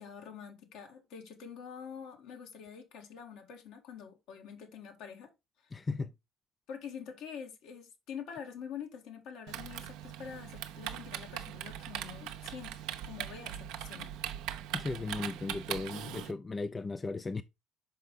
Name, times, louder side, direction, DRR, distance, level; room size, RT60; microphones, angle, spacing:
voice 1, 0.0-5.3 6.7-14.1, left 7 dB, 70° left, 1.6 m, -46 dB
voice 2, 5.7-6.1 14.7-17.4, left 3 dB, 25° left, 0.4 m, -36 dB
Typing, 9.5-16.3, right 11 dB, 70° right, 0.6 m, -40 dB
5.5 x 5.3 x 3.7 m
hypercardioid pair, 60°, 0 cm